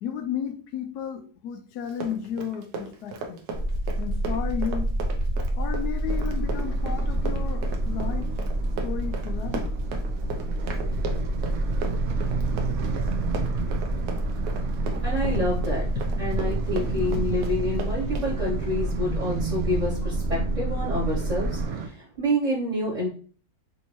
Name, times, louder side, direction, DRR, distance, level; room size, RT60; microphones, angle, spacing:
voice 1, 0.0-3.4 4.0-4.9 5.6-8.3 8.8-9.7 11.1-11.2 16.3-16.4 17.0-17.4, left 8 dB, 90° left, 7 dB, 1.2 m, -33 dB
Run, 1.8-18.3, right 4 dB, 90° right, 1.3 m, -37 dB
sound 1, 3.5-21.6, right 1 dB, 20° left, 0.9 m, -28 dB
sound 2, 6.1-21.9, right 7 dB, 70° right, 1.1 m, -34 dB
voice 2, 15.0-15.8 16.2-23.1, left 1 dB, 30° right, -7 dB, 1.0 m, -28 dB
5.3 x 2.8 x 2.9 m, 0.41 s
omnidirectional pair, 1.6 m